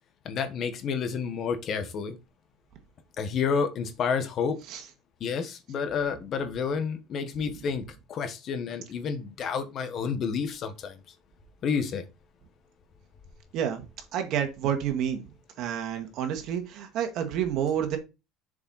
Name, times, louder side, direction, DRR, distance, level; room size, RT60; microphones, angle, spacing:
voice 1, 0.2-2.2 3.2-4.6 5.2-7.8 8.1-11.0 11.6-12.0, left 6 dB, 40° left, 1.3 m, -30 dB
voice 2, 13.5-13.9 14.1-15.3 15.6-18.0, right 9 dB, 55° right, 1.9 m, -29 dB
7.1 x 5.3 x 4.2 m
cardioid pair, 140°, 0 cm